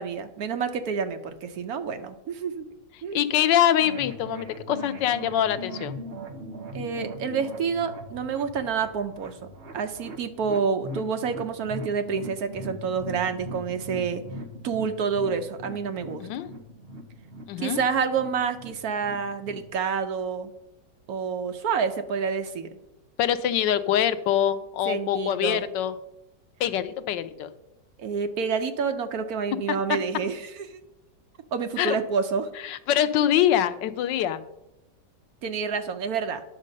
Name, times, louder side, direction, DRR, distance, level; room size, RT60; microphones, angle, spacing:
voice 1, 0.0-2.7 3.0-3.2 6.7-9.4 9.7-14.2 14.6-16.3 17.6-20.5 21.1-22.7 24.9-25.6 28.0-30.7 31.5-32.5 35.4-36.4, right 6 dB, 65° right, 8 dB, 1.1 m, -28 dB
voice 2, 3.1-6.0 16.2-16.5 17.5-17.8 23.2-25.9 26.6-27.5 31.8-32.0 32.6-34.4, left 10 dB, 90° left, 11 dB, 1.3 m, -24 dB
sound 1, 3.8-19.7, right 1 dB, 45° right, 1.0 m, -40 dB
9.9 x 6.5 x 5.3 m, 0.90 s
omnidirectional pair, 1.9 m